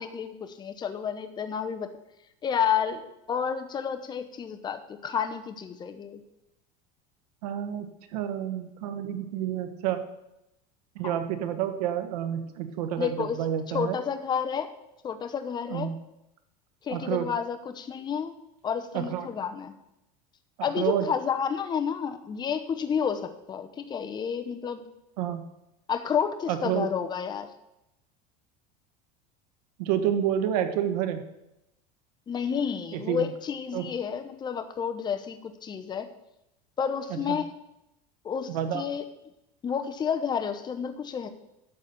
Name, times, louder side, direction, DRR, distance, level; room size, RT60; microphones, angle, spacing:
voice 1, 0.0-1.9 2.4-3.0 3.3-6.2 11.0-11.1 13.0-13.4 13.7-14.7 15.0-15.9 16.8-18.3 18.6-19.7 20.6-24.8 25.9-27.5 32.3-36.1 36.8-37.5 38.2-39.0 39.6-41.3, left 7 dB, 20° left, 8 dB, 0.8 m, -30 dB
voice 2, 7.4-7.9 8.1-10.0 10.9-14.0 15.7-16.0 16.9-17.3 18.9-19.3 20.8-21.1 25.2-25.5 26.5-26.9 29.8-31.3 32.9-33.3 33.7-33.9 37.1-37.4 38.5-38.8, right 10 dB, 90° right, 9 dB, 1.3 m, -29 dB
12.0 x 4.2 x 8.1 m, 0.88 s
supercardioid pair, 140°, 19 cm